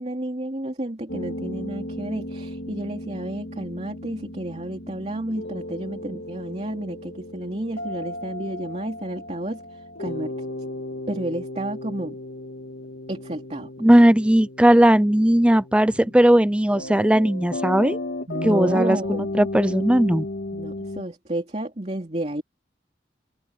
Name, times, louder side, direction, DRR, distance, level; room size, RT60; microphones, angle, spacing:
voice 1, 0.0-10.5 11.1-12.2 13.1-13.7 18.3-19.3 20.5-22.4, right 1 dB, 35° right, 2.9 m, -31 dB
sound 1, 1.1-21.0, left 1 dB, 70° left, 3.0 m, -35 dB
voice 2, 13.8-18.0 18.4-19.0 19.3-20.3, right 1 dB, 5° right, 0.5 m, -17 dB
head